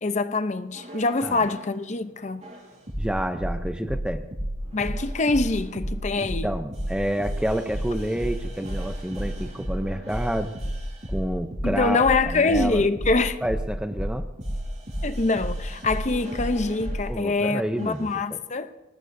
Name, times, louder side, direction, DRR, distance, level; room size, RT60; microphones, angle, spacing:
voice 1, 0.0-2.4 4.7-6.5 11.6-13.4 15.0-18.7, left 3 dB, 35° left, 0.6 m, -24 dB
sound 1, 0.7-1.7 2.4-17.1 17.8-18.1, equal, 35° right, 5.3 m, -32 dB
voice 2, 3.0-4.2 6.2-10.5 11.1-12.8 13.4-14.3 17.1-18.1, equal, 5° right, 0.6 m, -29 dB
24.5 x 19.5 x 2.7 m
head